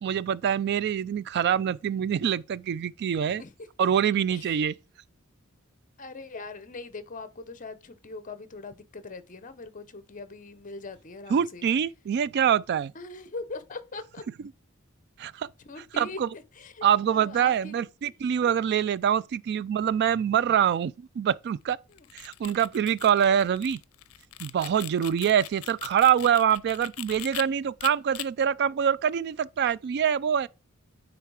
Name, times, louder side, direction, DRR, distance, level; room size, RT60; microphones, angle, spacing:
voice 1, 0.0-3.4 3.8-4.8 11.3-12.9 15.2-15.5 16.0-16.3 16.8-21.8 22.1-23.8 24.4-30.5, right 8 dB, 50° right, 0.3 m, -25 dB
voice 2, 6.0-11.7 12.9-14.2 15.6-17.8 18.4-18.5 21.9-22.1, left 3 dB, 40° left, 0.7 m, -41 dB
sound 1, 21.9-27.4 27.8-28.3, left 14 dB, 85° left, 0.5 m, -40 dB
9.3 x 3.3 x 4.7 m
head